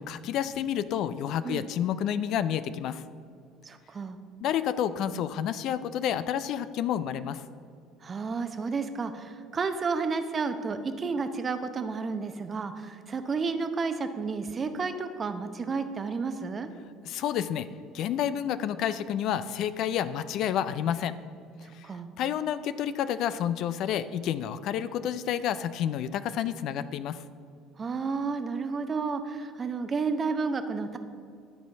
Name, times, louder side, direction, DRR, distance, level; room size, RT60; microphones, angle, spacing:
voice 1, 0.0-3.0 4.4-7.4 17.1-17.7 17.9-21.1 21.7-21.9 22.2-27.2, left 9 dB, 60° left, 14 dB, 0.3 m, -29 dB
voice 2, 3.6-4.2 8.0-16.7 21.6-22.1 27.8-31.0, right 4 dB, 35° right, 9 dB, 0.7 m, -31 dB
11.0 x 4.4 x 5.6 m, 2.3 s
hypercardioid pair, 65°, 0 cm